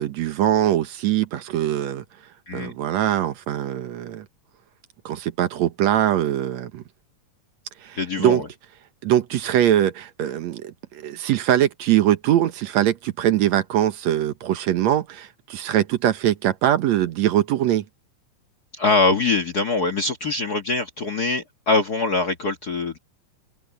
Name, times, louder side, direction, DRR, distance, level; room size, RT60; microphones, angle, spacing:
voice 1, 0.0-2.0 2.5-4.3 5.1-6.8 7.8-8.4 9.0-17.8, right 12 dB, 65° right, 2.1 m, -22 dB
voice 2, 7.9-8.5 18.7-23.0, left 3 dB, 55° left, 1.0 m, -23 dB
open air
omnidirectional pair, 3.7 m